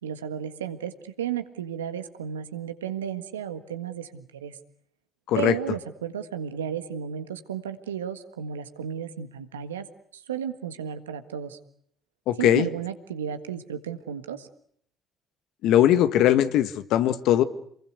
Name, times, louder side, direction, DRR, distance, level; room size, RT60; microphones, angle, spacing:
voice 1, 0.0-4.6 5.3-9.8 10.1-11.6 12.4-14.5, right 8 dB, 90° right, 9 dB, 1.7 m, -33 dB
voice 2, 5.3-5.8 12.3-12.7 15.6-17.4, left 11 dB, 65° left, 12 dB, 1.5 m, -20 dB
28.0 x 21.5 x 8.2 m, 0.66 s
hypercardioid pair, 55°, 0 cm